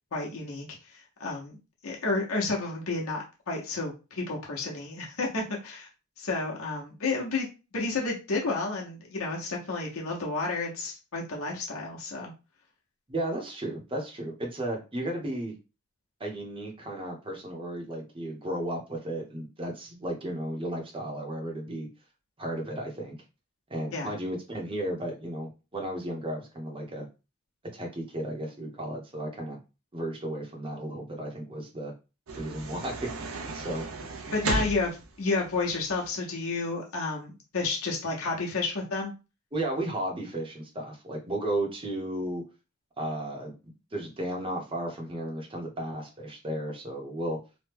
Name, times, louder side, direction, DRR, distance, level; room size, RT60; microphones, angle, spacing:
voice 1, 0.1-1.6 1.8-5.9 6.2-7.5 7.7-12.3 23.9-24.1 34.3-39.1, left 3 dB, 80° left, -1 dB, 0.9 m, -31 dB
voice 2, 13.1-15.5 16.2-21.9 22.4-23.2 23.7-27.0 27.7-29.6 29.9-31.9 32.3-33.1 33.5-33.9 39.5-42.4 43.0-47.4, right 1 dB, 25° right, 1 dB, 0.8 m, -34 dB
sound 1, 32.3-36.1, right 2 dB, 80° right, 0.6 m, -35 dB
3.0 x 2.2 x 3.4 m, 0.30 s
head